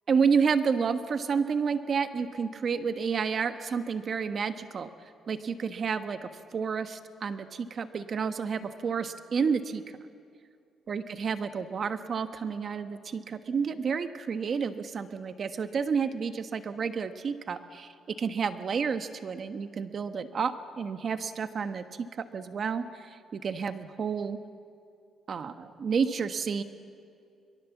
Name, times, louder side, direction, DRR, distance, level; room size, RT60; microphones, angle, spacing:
voice 1, 0.1-4.9 5.3-9.8 10.9-24.4 25.3-26.6, right 6 dB, 50° right, 9 dB, 1.3 m, -30 dB
23.5 x 23.0 x 7.3 m, 2.4 s
cardioid pair, 90°, 0 cm